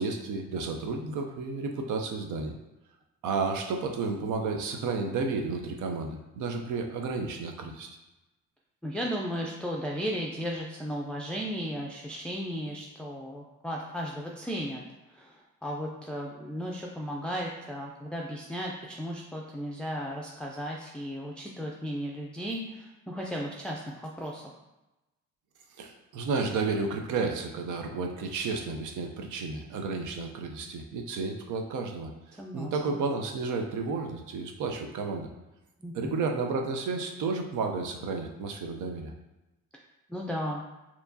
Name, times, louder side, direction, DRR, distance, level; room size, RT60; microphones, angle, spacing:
voice 1, 0.0-2.5 3.2-7.9 25.8-35.3 35.9-39.1, right 4 dB, 80° right, 3 dB, 0.6 m, -32 dB
voice 2, 8.8-24.5 32.4-33.0 35.8-36.1 40.1-40.6, equal, 5° left, -2 dB, 0.4 m, -35 dB
4.5 x 2.9 x 2.7 m, 0.99 s
cardioid pair, 90°, 30 cm